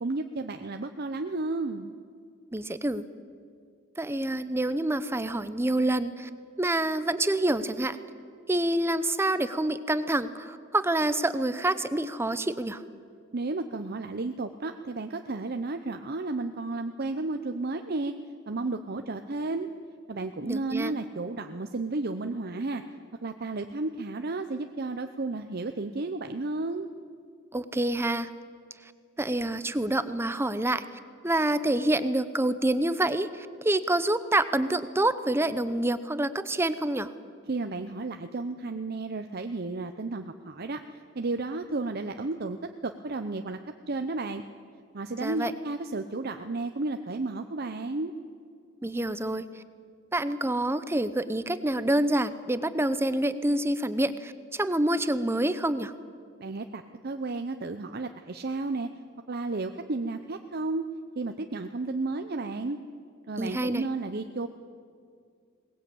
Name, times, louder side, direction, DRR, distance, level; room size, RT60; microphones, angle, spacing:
voice 1, 0.0-1.9 13.3-18.1 18.5-19.7 20.1-22.8 23.2-26.9 37.5-42.6 42.8-43.6 43.9-44.4 44.9-48.1 56.4-58.9 59.3-60.8 61.2-62.8 63.3-64.5, right 3 dB, 50° right, 7 dB, 0.8 m, -32 dB
voice 2, 2.5-3.0 4.0-6.3 6.6-8.0 8.5-12.8 20.5-20.9 27.5-28.3 29.2-30.8 31.2-37.1 45.2-45.5 48.8-49.4 50.1-55.9 63.4-63.8, right 1 dB, 10° right, 13 dB, 0.8 m, -27 dB
21.5 x 19.5 x 8.6 m, 2.2 s
head